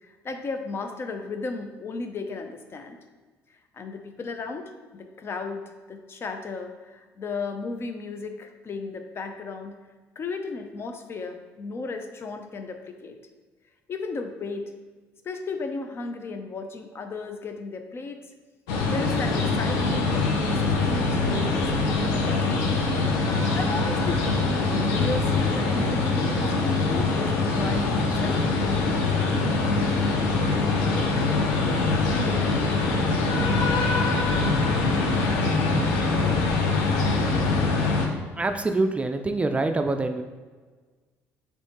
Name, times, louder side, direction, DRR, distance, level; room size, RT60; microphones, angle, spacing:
voice 1, 0.0-3.0 3.7-9.8 10.2-13.2 13.9-14.7 15.2-18.3 18.8-22.6 23.5-29.0, left 4 dB, 40° left, 6 dB, 0.5 m, -35 dB
sound 1, 18.7-38.1, left 3 dB, 85° left, 0.6 m, -23 dB
voice 2, 38.4-40.2, right 2 dB, 20° right, 6 dB, 0.3 m, -25 dB
3.4 x 3.1 x 4.2 m, 1.4 s
supercardioid pair, 75°, 6 cm